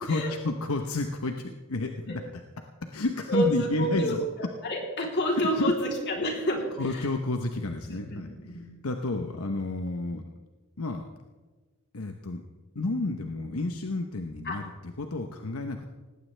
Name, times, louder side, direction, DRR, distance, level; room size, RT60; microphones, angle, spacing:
voice 1, 0.0-2.4 2.8-4.2 5.3-5.7 6.8-10.2 10.8-11.1 11.9-12.4 12.7-15.9, left 2 dB, 85° left, 5 dB, 1.0 m, -31 dB
voice 2, 3.3-4.2 4.6-7.0 8.1-8.6 14.4-14.6, equal, 55° left, 0 dB, 3.4 m, -28 dB
18.5 x 16.5 x 3.4 m, 1.3 s
head